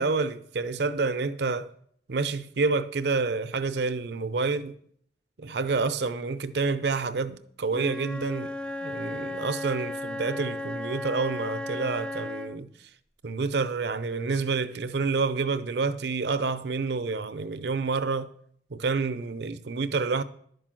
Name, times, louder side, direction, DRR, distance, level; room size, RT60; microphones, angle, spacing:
voice 1, 0.0-1.7 2.1-4.7 5.4-12.7 13.2-18.3 18.7-20.2, right 4 dB, 70° right, 0.6 m, -28 dB
Wind instrument woodwind instrument, 7.7-12.7, left 1 dB, 5° left, 0.3 m, -35 dB
11.0 x 5.4 x 7.5 m
head